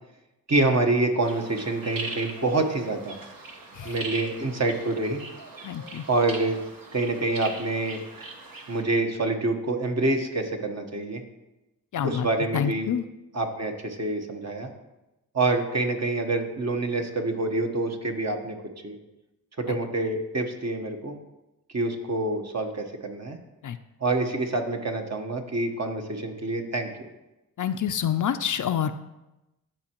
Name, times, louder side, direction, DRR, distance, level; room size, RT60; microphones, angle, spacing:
voice 1, 0.5-3.2 3.8-5.2 6.1-6.6 6.9-8.0 8.7-11.2 12.0-12.9 13.3-14.7 15.3-18.6 18.8-19.0 19.6-21.1 21.7-23.4 24.0-26.9, right 2 dB, 45° right, 4 dB, 1.2 m, -26 dB
sound 1, 1.2-8.8, right 2 dB, 65° right, 1.2 m, -40 dB
voice 2, 5.6-6.0 11.9-12.3 12.5-13.1 19.7-19.8 23.6-23.8 27.6-28.9, left 9 dB, 55° left, 10 dB, 0.5 m, -27 dB
13.0 x 4.5 x 3.0 m, 0.98 s
cardioid pair, 50°, 37 cm